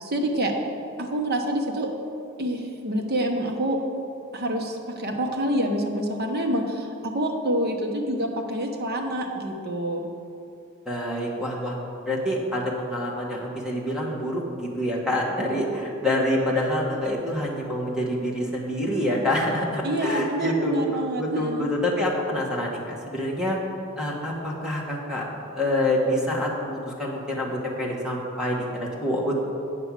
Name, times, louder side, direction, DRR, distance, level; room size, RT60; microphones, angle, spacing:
voice 1, 0.0-0.5 1.0-1.9 2.4-3.8 4.3-10.0 19.8-21.7, right 1 dB, 50° right, 2 dB, 1.1 m, -27 dB
voice 2, 10.8-11.7 12.0-23.6 24.0-25.2 25.5-29.4, left 1 dB, 5° right, -4 dB, 1.3 m, -26 dB
8.7 x 5.5 x 7.4 m, 2.6 s
head